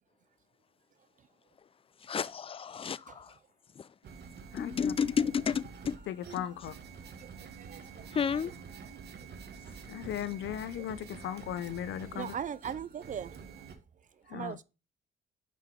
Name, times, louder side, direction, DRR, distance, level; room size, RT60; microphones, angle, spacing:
voice 1, 2.0-3.3 3.8-3.9 4.6-6.0 8.1-8.5, left 7 dB, 30° left, 0.3 m, -31 dB
voice 2, 3.1-3.4 6.2-6.3 7.0-9.3 9.6-9.8 10.5-11.0 12.0-14.6, right 8 dB, 40° right, 0.4 m, -43 dB
sound 1, 4.0-13.8, right 6 dB, 55° right, 1.1 m, -48 dB
voice 3, 4.5-4.9 6.1-6.8 9.8-12.3 14.3-14.6, left 10 dB, 70° left, 0.6 m, -37 dB
5.7 x 5.0 x 3.5 m
cardioid pair, 90°, 20 cm